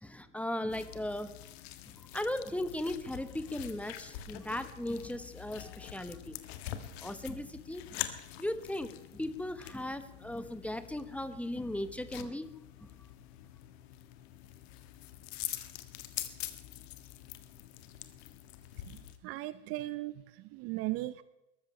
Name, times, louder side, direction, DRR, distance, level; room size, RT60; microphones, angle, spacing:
voice 1, 0.0-1.3 1.9-6.4 6.7-8.0 8.4-12.5 12.8-12.9, left 1 dB, 5° left, 11 dB, 1.1 m, -37 dB
sound 1, 0.7-19.2, left 13 dB, 55° left, 1.7 m, -45 dB
voice 2, 18.8-21.2, right 17 dB, 40° right, 16 dB, 0.7 m, -38 dB
22.0 x 14.0 x 3.3 m, 0.92 s
figure-of-eight pair, 90°, 36 cm